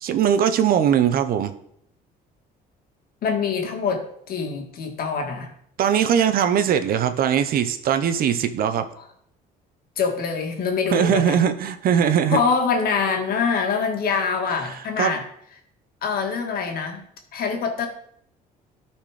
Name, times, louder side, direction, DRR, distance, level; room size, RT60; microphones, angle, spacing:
voice 1, 0.0-1.5 5.8-8.9 10.9-12.4 15.0-15.2, right 8 dB, 60° right, 10 dB, 0.8 m, -20 dB
voice 2, 3.2-5.5 10.0-11.5 12.3-15.2 16.0-17.9, left 5 dB, 60° left, 4 dB, 1.8 m, -24 dB
12.5 x 4.4 x 4.9 m, 0.68 s
cardioid pair, 110°, 17 cm